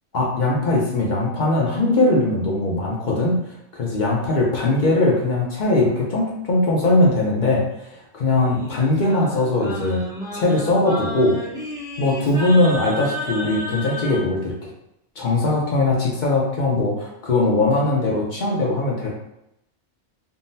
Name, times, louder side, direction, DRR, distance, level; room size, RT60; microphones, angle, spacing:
voice 1, 0.1-3.4 3.7-10.0 10.3-11.4 12.0-14.7 15.2-19.1, left 2 dB, 50° left, -3 dB, 0.6 m, -20 dB
Singing, 8.2-14.3, left 1 dB, 5° right, 0.5 m, -32 dB
3.7 x 2.0 x 2.6 m, 0.83 s
omnidirectional pair, 1.2 m